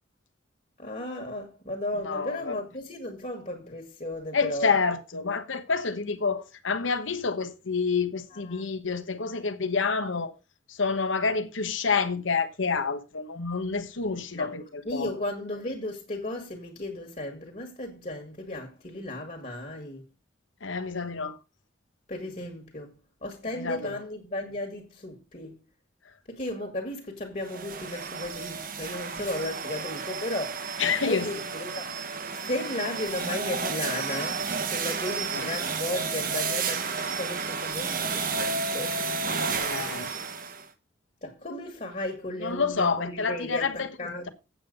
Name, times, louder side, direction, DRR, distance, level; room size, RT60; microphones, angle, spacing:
voice 1, 0.8-4.8 8.3-8.6 14.4-14.6 14.8-20.1 22.1-22.9 23.2-25.6 26.3-30.7 31.0-31.9 32.5-39.0 41.2-44.3, left 1 dB, 40° left, 1.8 m, -35 dB
voice 2, 2.0-2.6 4.3-10.3 10.8-15.1 20.6-21.3 23.6-24.0 30.8-31.3 35.3-35.4 39.5-40.1 42.4-43.9, left 5 dB, 85° left, 1.2 m, -28 dB
sound 1, 27.4-40.7, right 5 dB, 45° right, 1.0 m, -32 dB
8.4 x 7.3 x 5.3 m
head